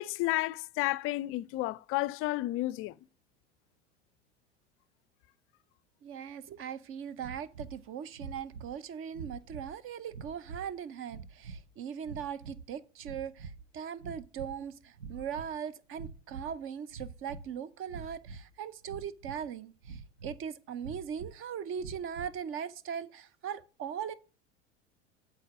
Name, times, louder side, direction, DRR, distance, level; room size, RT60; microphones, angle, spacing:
voice 1, 0.0-2.9, left 18 dB, 40° left, 0.5 m, -31 dB
voice 2, 6.0-24.1, right 8 dB, 35° right, 0.8 m, -40 dB
sound 1, 7.2-7.8 8.1-8.8 9.1-9.7 10.1-10.7 11.1-11.6 12.0-12.7 13.0-13.7 14.0-14.6 14.9-15.5 15.9-16.6 16.9-17.5 17.9-18.4 18.9-19.5 19.8-20.4 20.8-21.3 21.8-22.4, right 5 dB, 85° right, 0.9 m, -45 dB
8.5 x 7.4 x 4.9 m
hypercardioid pair, 85°, 34 cm